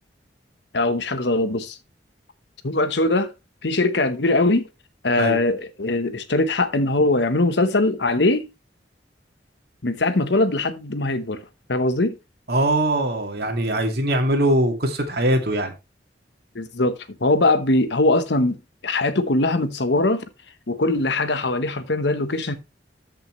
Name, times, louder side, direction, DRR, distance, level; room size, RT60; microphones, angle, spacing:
voice 1, 0.7-1.8 2.6-3.3 3.6-4.7 5.0-8.5 9.8-12.1 16.5-18.6 18.8-20.2 20.7-22.5, left 2 dB, 75° left, 1.1 m, -21 dB
voice 2, 12.5-15.7, right 1 dB, 60° right, 2.2 m, -21 dB
13.5 x 5.8 x 3.2 m
head